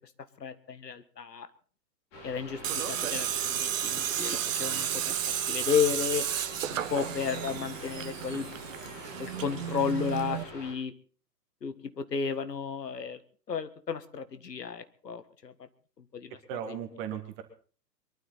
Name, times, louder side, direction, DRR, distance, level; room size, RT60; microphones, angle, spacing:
voice 1, 0.4-1.5 2.2-5.0 5.3-6.2 6.7-8.5 9.2-10.9 11.6-13.2 13.5-15.5 16.1-16.4, left 7 dB, 75° left, 12 dB, 1.7 m, -33 dB
sound 1, 2.1-10.7, equal, 30° left, 6.1 m, -45 dB
Tools, 2.6-10.4, right 10 dB, 50° right, 1.3 m, -32 dB
voice 2, 16.5-17.4, right 8 dB, 30° right, 5 dB, 2.0 m, -37 dB
23.0 x 12.5 x 4.2 m, 0.42 s
figure-of-eight pair, 120°, 49 cm